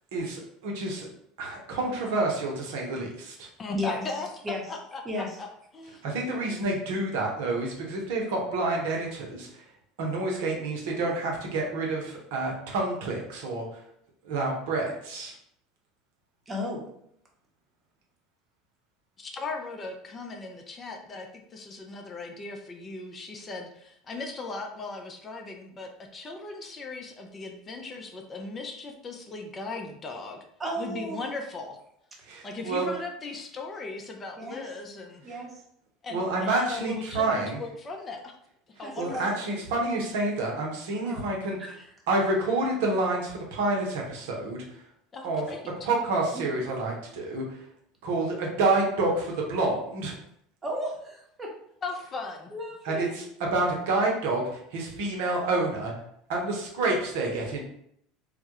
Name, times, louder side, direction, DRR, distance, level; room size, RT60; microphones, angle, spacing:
voice 1, 0.1-1.1 1.4-3.5 6.0-9.6 10.0-13.7 14.2-15.3 32.3-32.9 36.1-37.6 39.0-41.6 42.1-44.6 45.2-45.4 45.8-47.6 48.0-50.2 52.8-53.2 53.5-55.9 56.3-57.6, right 2 dB, 70° right, -1 dB, 0.6 m, -28 dB
voice 2, 3.6-4.3 4.7-5.5 5.7-6.0 19.2-30.4 30.8-31.8 32.4-35.2 36.0-38.3 38.8-39.4 45.1-45.6 51.8-52.5, left 3 dB, 30° left, 2 dB, 0.4 m, -38 dB
voice 3, 5.0-5.4 16.5-16.9 30.6-31.3 34.4-34.6 35.2-35.5 38.8-39.6 41.0-41.2 41.6-41.9 46.3-46.4 50.6-51.5 52.5-53.1, equal, 20° right, -1 dB, 0.8 m, -34 dB
2.2 x 2.0 x 2.8 m, 0.71 s
hypercardioid pair, 75°, 0 cm